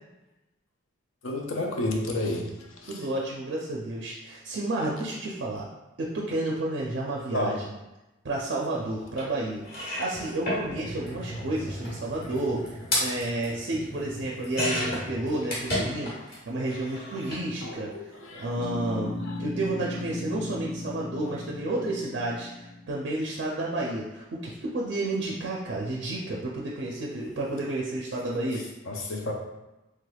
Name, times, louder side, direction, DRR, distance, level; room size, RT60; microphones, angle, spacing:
voice 1, 1.2-3.1 7.3-7.5 17.6-18.6 19.2-19.4 21.2-21.4 27.2-27.3 28.5-29.3, left 2 dB, 70° left, 1 dB, 0.5 m, -32 dB
voice 2, 2.9-5.7 6.0-7.6 8.2-17.9 18.3-28.6, right 2 dB, 55° right, -3 dB, 0.4 m, -31 dB
sound 1, 9.2-9.3 9.6-16.4 16.6-17.5 18.5-18.6 18.9-19.0, left 1 dB, 45° left, 1.2 m, -33 dB
sound 2, 18.6-23.2, left 2 dB, 15° left, 1.3 m, -36 dB
3.3 x 3.2 x 2.3 m, 1.0 s
head